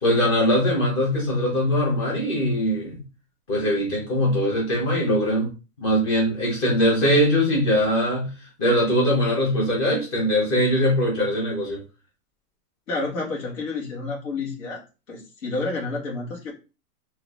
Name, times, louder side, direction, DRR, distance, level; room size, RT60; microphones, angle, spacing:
voice 1, 0.0-3.0 3.5-5.5 5.8-8.3 8.6-11.8, equal, 25° left, -3 dB, 1.5 m, -21 dB
voice 2, 12.9-14.8 15.1-16.5, left 3 dB, 55° left, -3 dB, 1.9 m, -29 dB
4.2 x 3.0 x 2.6 m, 0.31 s
hypercardioid pair, 175°, 46 cm